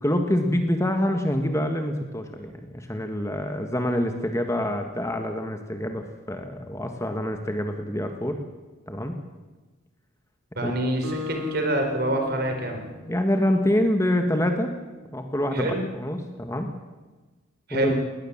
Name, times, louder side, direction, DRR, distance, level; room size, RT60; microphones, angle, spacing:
voice 1, 0.0-8.4 8.9-9.2 10.6-10.7 13.1-14.7 15.1-16.7 17.7-17.9, left 1 dB, 15° left, 5 dB, 1.6 m, -26 dB
voice 2, 10.6-12.8 15.5-15.8 17.7-17.9, right 1 dB, 50° right, 4 dB, 4.2 m, -26 dB
Acoustic guitar, 11.0-13.8, left 4 dB, 85° right, 6.6 m, -36 dB
19.5 x 19.5 x 7.3 m, 1.2 s
head